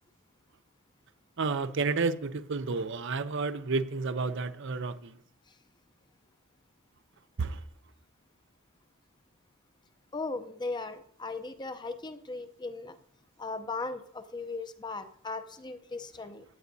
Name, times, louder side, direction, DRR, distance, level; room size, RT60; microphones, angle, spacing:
voice 1, 1.4-5.1 7.4-7.6, right 4 dB, 60° right, 0.6 m, -31 dB
voice 2, 10.1-13.0 13.4-16.4, left 3 dB, 20° left, 0.6 m, -37 dB
15.0 x 9.3 x 2.7 m
head